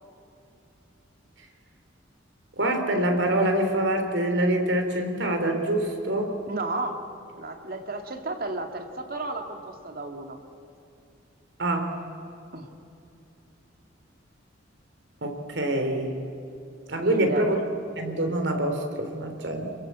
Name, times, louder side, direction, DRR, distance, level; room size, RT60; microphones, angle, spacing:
voice 1, 2.6-6.4 11.6-11.9 15.2-16.1 16.9-17.6 18.0-19.7, right 1 dB, 65° right, 5 dB, 3.6 m, -25 dB
voice 2, 6.5-7.0 7.4-10.4 12.5-12.7 17.0-17.5, right 2 dB, 50° right, 5 dB, 2.4 m, -33 dB
28.5 x 22.5 x 8.4 m, 2.7 s
head